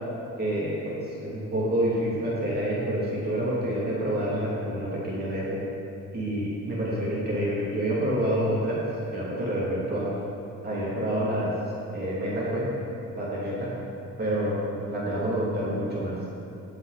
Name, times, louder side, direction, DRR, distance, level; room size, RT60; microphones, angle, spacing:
voice 1, 0.4-5.6 6.1-8.8 9.1-10.1 10.6-11.5 11.9-12.7 13.2-13.7 14.2-16.2, right 1 dB, 35° right, -7 dB, 2.6 m, -28 dB
16.5 x 6.1 x 4.1 m, 2.7 s
cardioid pair, 115°, 29 cm